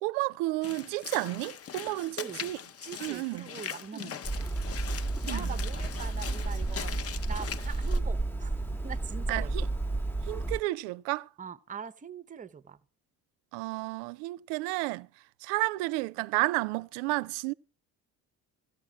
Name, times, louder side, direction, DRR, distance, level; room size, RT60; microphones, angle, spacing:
voice 1, 0.0-2.6 3.0-3.5 3.9-4.1 5.3-5.5 9.3-9.6 10.3-11.3 13.5-15.1 15.4-17.5, right 20 dB, 70° right, 0.5 m, -31 dB
Walk footsteps / Splash splatter, 0.6-8.0, left 8 dB, 35° left, 0.7 m, -41 dB
voice 2, 2.2-2.5 2.8-4.5 5.3-7.0 7.3-8.5 8.8-9.5 11.4-12.8, right 7 dB, 20° right, 0.6 m, -43 dB
Hammer, 4.2-10.6, right 2 dB, 5° left, 0.9 m, -32 dB
14.5 x 8.0 x 6.0 m
hypercardioid pair, 55°, 42 cm